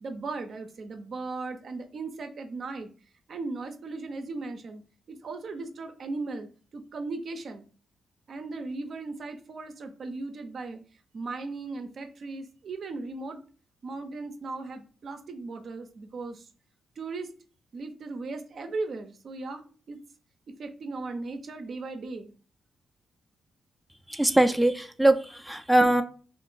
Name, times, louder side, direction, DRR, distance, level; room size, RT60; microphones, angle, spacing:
voice 1, 0.0-2.9 3.3-7.7 8.3-10.8 11.1-13.4 13.8-16.5 17.0-17.3 17.7-20.0 20.5-22.3, right 3 dB, 60° right, 7 dB, 0.5 m, -37 dB
voice 2, 24.1-26.0, right 1 dB, ahead, 7 dB, 0.4 m, -22 dB
2.5 x 2.5 x 3.7 m, 0.39 s
cardioid pair, 60°, 0 cm